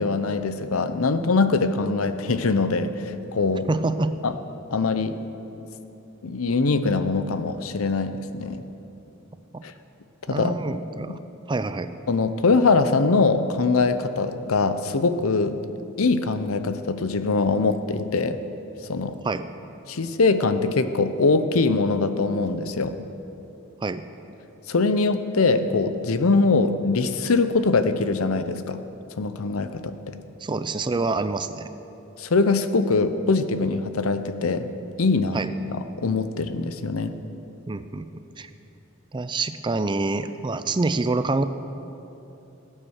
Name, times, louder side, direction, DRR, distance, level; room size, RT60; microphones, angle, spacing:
voice 1, 0.0-3.7 4.2-4.3 4.7-5.2 6.2-8.6 9.6-9.7 10.3-10.5 12.1-15.6 16.0-18.4 18.8-19.2 19.9-22.9 24.7-28.8 29.2-30.1 32.2-34.7 35.0-35.4 35.7-37.1, left 3 dB, 80° left, 10 dB, 0.7 m, -22 dB
voice 2, 3.7-4.1 9.5-9.6 10.3-11.2 11.5-11.9 19.2-19.5 23.8-24.0 30.4-31.7 35.3-35.5 37.7-38.1 38.4-38.5 39.1-41.4, right 3 dB, 20° right, 11 dB, 0.4 m, -26 dB
16.5 x 8.9 x 6.4 m, 2.9 s
head